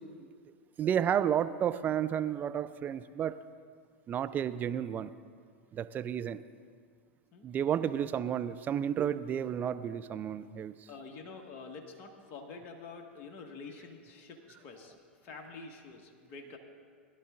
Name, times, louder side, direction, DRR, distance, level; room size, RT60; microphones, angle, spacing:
voice 1, 0.8-3.4 4.1-5.1 5.7-6.4 7.4-10.7, right 9 dB, 30° right, 14 dB, 0.4 m, -31 dB
voice 2, 10.9-16.6, left 4 dB, 40° left, 3 dB, 1.3 m, -47 dB
20.0 x 11.5 x 2.4 m, 2.1 s
hypercardioid pair, 95°, 6 cm